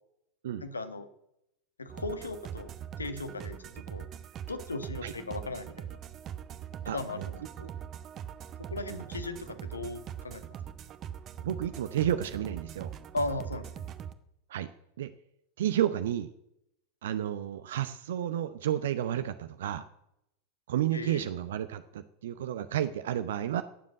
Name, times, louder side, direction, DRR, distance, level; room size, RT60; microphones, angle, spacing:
voice 1, 0.6-1.1 1.8-2.7 3.0-4.1 4.5-6.0 6.8-7.7 8.6-10.4 13.1-13.7 20.9-21.3, left 2 dB, 75° left, 9 dB, 1.5 m, -37 dB
sound 1, 1.9-14.1, right 9 dB, 30° right, 1.0 m, -42 dB
voice 2, 6.8-7.3 8.9-9.0 11.4-12.9 14.5-14.7 15.0-15.1 15.6-16.3 17.0-19.8 20.7-23.6, right 11 dB, 60° right, 11 dB, 0.7 m, -31 dB
18.0 x 7.5 x 7.8 m, 0.81 s
figure-of-eight pair, 90°, 0 cm